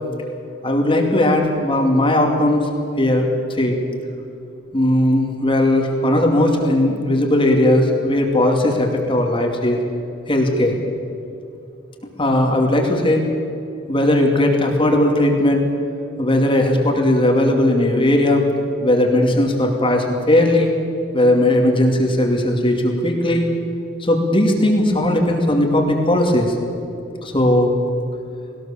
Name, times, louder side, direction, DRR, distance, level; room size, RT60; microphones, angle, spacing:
voice 1, 0.6-2.7 3.0-3.3 3.6-3.7 4.7-9.8 10.3-10.8 12.2-13.3 13.9-15.7 16.2-18.4 18.8-20.7 21.1-23.5 24.0-26.5 27.2-27.7, left 1 dB, 25° left, 2 dB, 2.5 m, -17 dB
20.0 x 18.5 x 7.3 m, 2.7 s
head